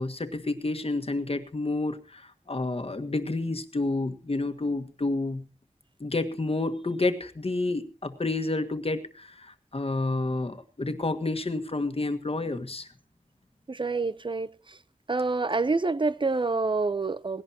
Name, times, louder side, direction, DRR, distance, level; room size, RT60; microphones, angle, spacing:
voice 1, 0.0-5.4 6.0-12.9, left 2 dB, 50° left, 1.6 m, -29 dB
voice 2, 13.7-14.8 15.1-17.4, right 3 dB, 40° right, 0.7 m, -27 dB
19.0 x 17.0 x 2.9 m
wide cardioid pair, 70°, 12 cm